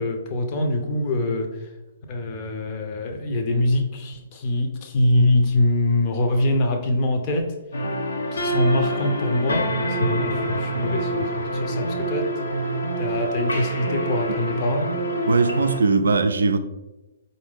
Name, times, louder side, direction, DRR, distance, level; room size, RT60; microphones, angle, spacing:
voice 1, 0.0-1.7 2.1-7.5 8.3-12.5 13.0-14.9, left 1 dB, 35° left, 0.7 m, -24 dB
sound 1, 7.7-15.8, right 1 dB, 70° left, 0.7 m, -26 dB
voice 2, 15.3-16.6, right 4 dB, 65° right, 0.4 m, -19 dB
4.7 x 2.6 x 3.5 m
figure-of-eight pair, 120°, 0 cm